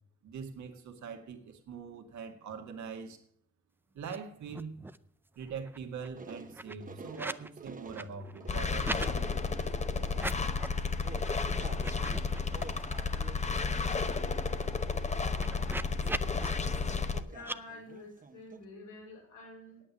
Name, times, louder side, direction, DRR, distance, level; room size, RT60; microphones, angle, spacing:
voice 1, 0.2-3.2 3.9-4.8 5.4-9.5, right 5 dB, 70° right, 5 dB, 1.9 m, -43 dB
sound 1, 4.0-4.2 4.4-5.1 5.4-7.5 7.8-9.1 10.1-10.8 11.2-11.3 11.7-13.0 13.4-13.5 13.8-16.5 17.4-17.6, right 2 dB, 5° right, 0.5 m, -42 dB
sound 2, 6.2-12.0 12.3-14.8 15.1-15.5 16.0-18.6, right 4 dB, 25° right, 1.0 m, -50 dB
sound 3, 8.5-17.2, left 4 dB, 25° left, 0.9 m, -32 dB
voice 2, 17.2-19.8, left 2 dB, 80° left, -1 dB, 4.5 m, -49 dB
8.9 x 8.4 x 8.5 m, 0.66 s
cardioid pair, 90°, 30 cm